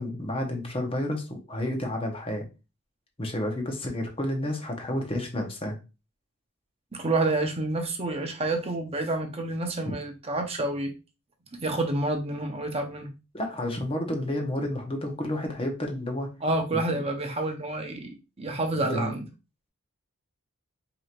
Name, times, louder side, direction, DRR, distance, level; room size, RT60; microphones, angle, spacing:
voice 1, 0.0-2.5 3.2-5.8 9.9-10.0 13.3-16.3 18.8-19.1, left 1 dB, 25° left, 2 dB, 0.9 m, -30 dB
voice 2, 6.9-10.9 11.5-13.1 16.4-19.3, right 2 dB, 25° right, 4 dB, 0.7 m, -29 dB
4.8 x 2.9 x 2.4 m, 0.29 s
head